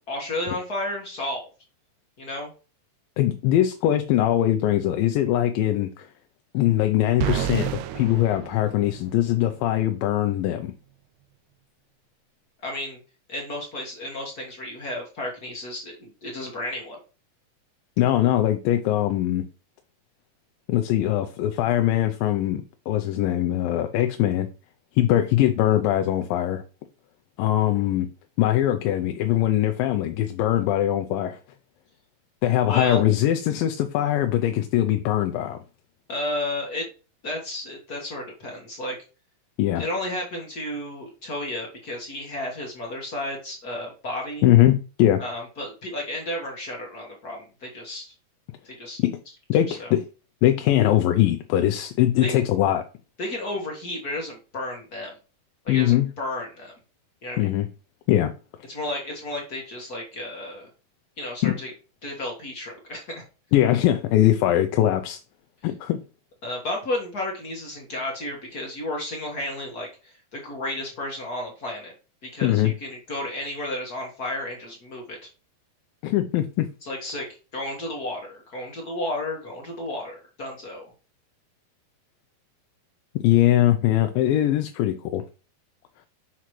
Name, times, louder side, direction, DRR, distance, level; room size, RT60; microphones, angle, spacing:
voice 1, 0.1-1.5 2.2-2.5 12.6-13.0 13.3-17.0 32.7-33.0 36.1-36.9 37.2-39.0 39.7-44.4 45.2-48.1 48.6-49.0 49.7-49.9 52.2-52.3 53.2-55.1 55.6-56.7 57.2-57.5 58.7-60.7 61.2-61.7 62.0-63.2 66.4-71.9 72.2-75.3 76.8-80.9, left 1 dB, 45° left, 1.2 m, -32 dB
voice 2, 3.2-6.1 6.5-10.7 18.0-19.5 20.7-24.5 25.0-26.6 27.4-28.1 28.4-31.4 32.4-35.6 39.6-39.8 44.4-45.2 49.0-49.2 49.5-50.1 50.4-52.8 55.7-56.1 57.4-57.7 58.1-58.3 61.4-61.6 63.5-65.2 65.6-66.0 72.4-72.7 76.0-76.7 83.2-85.2, left 13 dB, 90° left, 2.4 m, -21 dB
sound 1, 7.2-9.3, right 12 dB, 80° right, 2.0 m, -30 dB
7.0 x 5.9 x 3.1 m
omnidirectional pair, 3.9 m